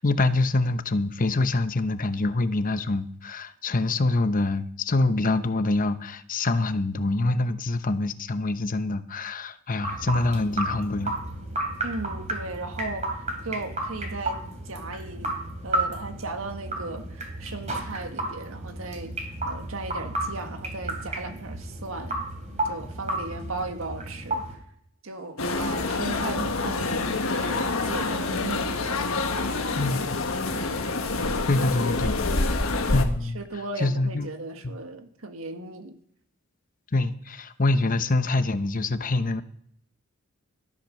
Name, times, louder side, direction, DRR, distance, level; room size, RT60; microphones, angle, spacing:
voice 1, 0.0-11.1 29.8-30.0 31.5-32.2 32.9-33.4 33.8-34.3 34.6-34.8 36.9-39.4, left 2 dB, 40° left, 0.9 m, -25 dB
sound 1, 9.8-24.5, right 2 dB, 35° right, 3.3 m, -32 dB
voice 2, 11.8-13.1 13.4-15.4 15.6-22.3 22.6-24.6 25.0-28.9 30.5-30.8 33.3-35.9, right 2 dB, 80° right, 1.7 m, -36 dB
sound 2, 25.4-33.0, left 3 dB, 85° left, 1.4 m, -27 dB
13.5 x 8.8 x 6.4 m
head